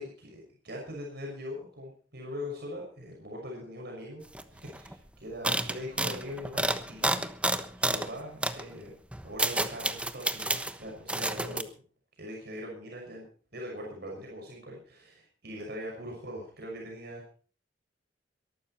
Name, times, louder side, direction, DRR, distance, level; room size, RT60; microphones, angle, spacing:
voice 1, 0.0-4.2 4.5-7.3 7.8-8.9 9.2-11.7 12.2-13.3 13.5-17.3, equal, 60° right, -1 dB, 6.2 m, -41 dB
sound 1, 4.3-4.4 4.7-4.9 5.4-8.1 8.4-8.6 9.1-10.7 11.1-11.6, right 2 dB, 5° right, 1.1 m, -30 dB
22.5 x 12.5 x 4.4 m, 0.41 s
head